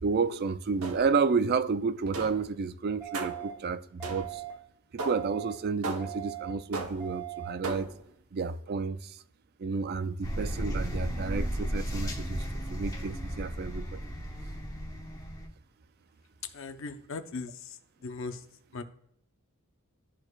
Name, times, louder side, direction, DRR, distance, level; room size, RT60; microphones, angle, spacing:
voice 1, 0.0-4.4 4.9-7.9 8.3-9.2 9.6-14.0, right 5 dB, 45° right, 0.4 m, -31 dB
sound 1, 0.8-1.3 2.1-2.6 3.1-3.6 4.0-4.5 5.0-5.4 5.8-6.3 6.7-7.2 7.6-8.1, right 3 dB, 85° right, 0.9 m, -38 dB
sound 2, 3.0-3.5 4.0-4.5 5.0-5.5 6.0-6.5 7.0-7.5, right 16 dB, 15° right, 2.0 m, -40 dB
sound 3, 10.2-15.5, equal, 15° left, 1.2 m, -34 dB
voice 2, 16.5-17.8 18.0-18.4 18.7-18.8, left 3 dB, 65° left, 0.7 m, -38 dB
12.5 x 4.3 x 2.3 m
head